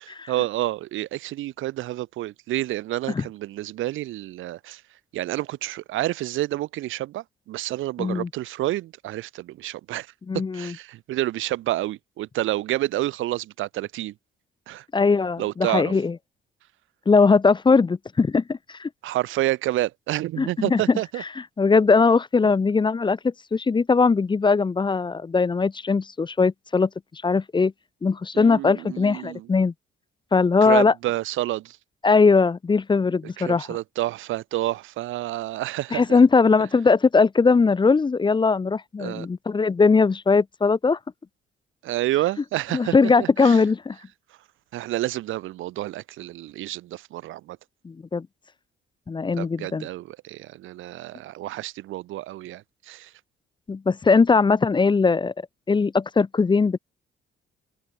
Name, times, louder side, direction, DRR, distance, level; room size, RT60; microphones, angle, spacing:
voice 1, 0.3-4.8 5.1-14.1 14.7-14.8 15.4-15.9 19.0-21.2 22.4-22.5 28.3-29.5 30.6-31.8 33.4-36.2 39.0-39.3 41.8-43.6 44.7-47.6 49.4-53.1, right 15 dB, 85° right, 0.9 m, -29 dB
voice 2, 10.3-10.7 14.9-16.1 17.1-18.9 20.4-21.0 21.6-27.7 28.0-29.7 30.3-30.9 32.0-33.6 35.9-41.0 42.7-44.0 47.8-48.3 49.1-49.9 53.7-55.3 55.7-56.8, left 4 dB, 25° left, 0.6 m, -20 dB
cardioid pair, 90°, 20 cm